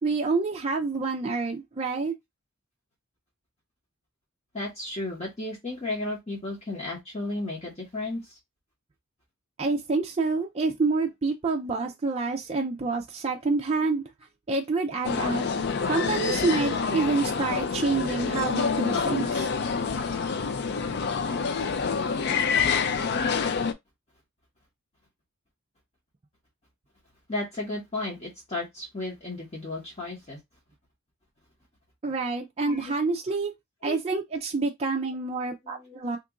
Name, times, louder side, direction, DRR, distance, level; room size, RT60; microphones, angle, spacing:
voice 1, 0.0-2.1 9.6-14.1 14.5-15.4 15.9-19.5 32.0-33.5 33.8-36.2, right 3 dB, 30° right, 0.4 m, -27 dB
voice 2, 4.5-8.2 27.3-30.4 32.7-32.9 33.8-34.0 35.7-36.0, left 2 dB, 30° left, 1.1 m, -34 dB
sound 1, 15.0-23.7, left 5 dB, 50° left, 0.4 m, -27 dB
2.9 x 2.4 x 3.6 m
head